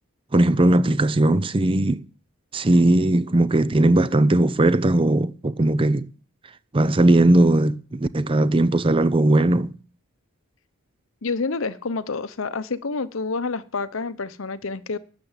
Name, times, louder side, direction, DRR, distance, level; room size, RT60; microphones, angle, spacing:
voice 1, 0.3-2.0 2.5-6.1 6.7-9.7, right 1 dB, 25° right, 0.5 m, -18 dB
voice 2, 11.2-15.0, left 4 dB, 65° left, 0.8 m, -28 dB
12.5 x 6.8 x 8.9 m
head